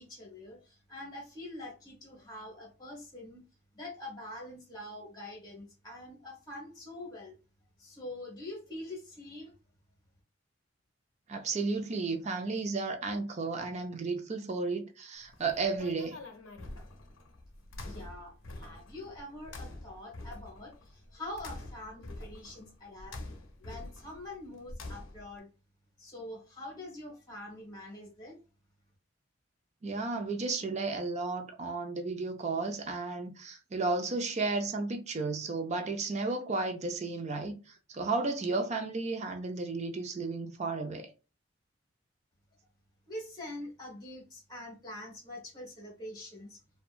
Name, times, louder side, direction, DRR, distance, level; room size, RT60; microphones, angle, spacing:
voice 1, 0.0-3.4 3.7-7.3 7.8-9.5 17.9-23.2 23.6-25.5 26.0-28.4 43.1-46.6, left 1 dB, 20° left, 1.0 m, -45 dB
voice 2, 11.3-16.2 29.8-41.1, right 3 dB, 35° right, 0.4 m, -33 dB
sound 1, 15.2-25.4, left 2 dB, 85° left, 0.5 m, -46 dB
2.7 x 2.2 x 2.3 m
head